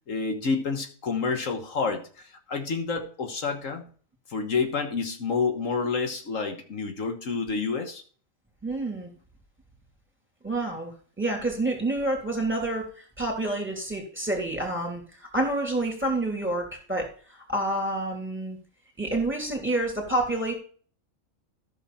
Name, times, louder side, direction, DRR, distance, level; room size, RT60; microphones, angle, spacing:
voice 1, 0.1-3.8 4.3-8.0, left 4 dB, 70° left, 5 dB, 1.6 m, -29 dB
voice 2, 8.6-9.1 10.4-18.6 19.0-20.5, right 2 dB, 10° right, 0 dB, 3.0 m, -28 dB
14.0 x 6.5 x 4.3 m, 0.43 s
omnidirectional pair, 1.4 m